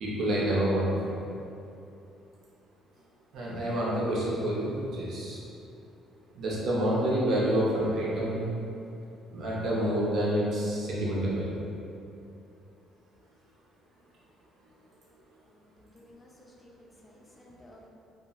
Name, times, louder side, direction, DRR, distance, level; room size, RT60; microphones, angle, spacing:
voice 1, 0.0-1.3 3.3-5.4 6.3-8.5 9.3-11.6, right 1 dB, 60° right, -6 dB, 0.6 m, -28 dB
voice 2, 15.8-17.9, left 1 dB, 20° left, -2 dB, 0.4 m, -55 dB
2.8 x 2.4 x 2.4 m, 2.7 s
cardioid pair, 125°, 0 cm